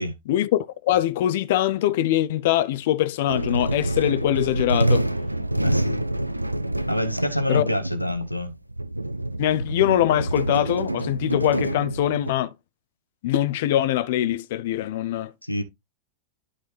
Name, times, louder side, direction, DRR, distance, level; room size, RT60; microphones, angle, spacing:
voice 1, 0.3-5.0 7.5-7.7 9.4-12.5 13.2-15.3, left 13 dB, 55° left, 0.5 m, -23 dB
sound 1, 3.3-12.3, right 1 dB, 85° right, 0.5 m, -27 dB
voice 2, 5.6-6.0 6.9-8.6 15.4-15.6, left 1 dB, 90° left, 1.1 m, -27 dB
11.5 x 4.3 x 3.3 m
figure-of-eight pair, 90°, 0 cm